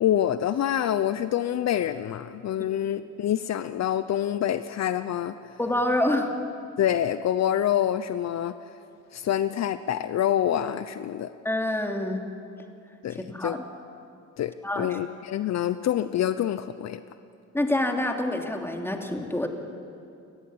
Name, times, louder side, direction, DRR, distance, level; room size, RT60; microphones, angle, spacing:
voice 1, 0.0-5.4 6.8-8.5 9.1-11.3 13.0-13.6 14.4-17.0, left 11 dB, 60° left, 12 dB, 0.8 m, -26 dB
voice 2, 5.6-6.3 11.4-12.3 13.1-13.6 14.6-15.0 17.5-19.5, left 1 dB, 10° left, 3 dB, 2.9 m, -27 dB
30.0 x 13.5 x 9.9 m, 2.6 s
cardioid pair, 90°, 30 cm